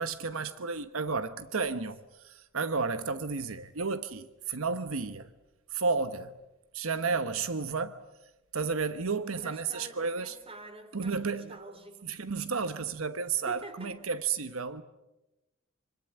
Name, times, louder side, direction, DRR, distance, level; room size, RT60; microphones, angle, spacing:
voice 1, 0.0-2.0 2.2-5.3 5.7-6.3 6.7-7.9 8.5-10.4 10.9-11.6 12.0-14.8, right 4 dB, 85° right, 1.1 m, -32 dB
voice 2, 1.5-1.8 9.3-12.1 13.5-14.0, right 2 dB, 25° right, 3.3 m, -48 dB
26.0 x 25.0 x 8.7 m
head